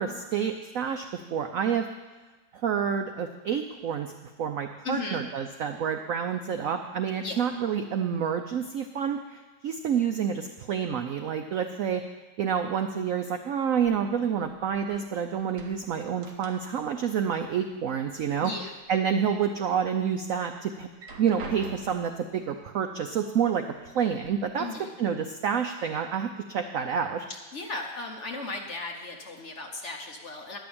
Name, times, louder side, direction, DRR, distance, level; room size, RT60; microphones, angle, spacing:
voice 1, 0.0-1.9 2.5-4.1 4.4-12.0 12.4-18.5 18.9-20.9 21.2-24.7 25.0-27.3, right 7 dB, 80° right, 6 dB, 0.7 m, -28 dB
voice 2, 4.8-5.2 7.2-7.5 18.4-18.7 24.6-24.9 27.3-30.6, left 3 dB, 45° left, 2 dB, 1.0 m, -36 dB
sound 1, 13.8-15.1 15.4-17.0 17.3-18.3 18.7-19.4 19.9-20.0 20.8-22.2 23.1-23.2 23.7-24.3, right 3 dB, 60° right, 1.7 m, -45 dB
11.0 x 6.1 x 8.6 m, 1.2 s
omnidirectional pair, 2.1 m